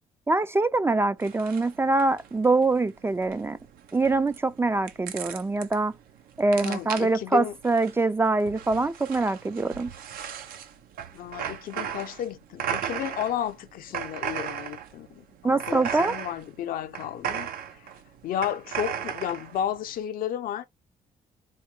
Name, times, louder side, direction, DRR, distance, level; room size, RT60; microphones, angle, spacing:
voice 1, 0.3-3.6 3.9-5.9 6.4-9.9 15.4-16.2, right 3 dB, 15° right, 0.3 m, -24 dB
sound 1, 1.2-20.0, right 9 dB, 80° right, 0.7 m, -36 dB
voice 2, 6.6-7.5 11.1-17.5 17.7-17.9 18.2-20.7, left 10 dB, 75° left, 0.6 m, -32 dB
4.4 x 2.2 x 3.1 m
cardioid pair, 100°, 15 cm